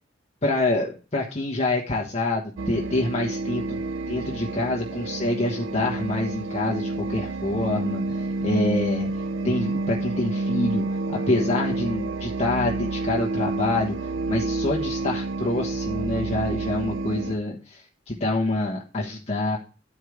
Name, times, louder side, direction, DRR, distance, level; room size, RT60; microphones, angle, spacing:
voice 1, 0.4-3.8 4.1-19.6, left 2 dB, 35° left, -2 dB, 1.3 m, -27 dB
sound 1, 2.6-17.4, right 2 dB, 80° right, 0.5 m, -29 dB
11.0 x 4.7 x 4.9 m, 0.34 s
head